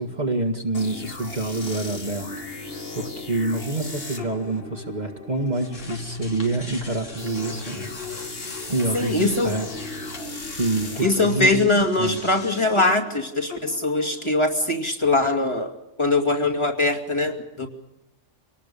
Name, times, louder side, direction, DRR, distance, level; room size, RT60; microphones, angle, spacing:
voice 1, 0.0-7.9 8.7-9.7 9.9-10.2 10.5-11.6 12.0-12.2, right 2 dB, 35° right, 3 dB, 1.9 m, -27 dB
sound 1, 0.7-14.5, left 3 dB, 50° left, 2.5 m, -38 dB
sound 2, 5.3-12.8, equal, 80° left, 3.4 m, -39 dB
voice 2, 8.9-9.6 11.0-15.7 16.0-17.7, left 2 dB, 25° left, 0 dB, 2.5 m, -22 dB
25.5 x 19.0 x 6.9 m, 0.91 s
omnidirectional pair, 1.3 m